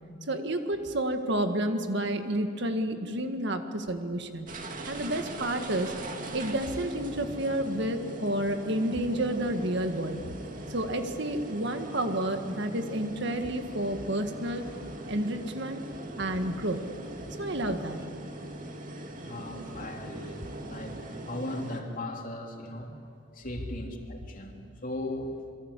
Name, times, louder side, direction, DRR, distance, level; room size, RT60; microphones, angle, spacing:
voice 1, 0.3-4.5 4.9-5.9 6.3-10.2 10.7-14.6 15.1-15.8 16.2-16.8 17.4-18.0, right 1 dB, 60° right, 6 dB, 1.8 m, -30 dB
sound 1, 4.5-21.8, right 1 dB, 40° right, 2.4 m, -41 dB
voice 2, 19.2-23.0 23.3-25.4, left 1 dB, 40° left, 1 dB, 3.1 m, -38 dB
27.5 x 23.0 x 8.4 m, 2.4 s
head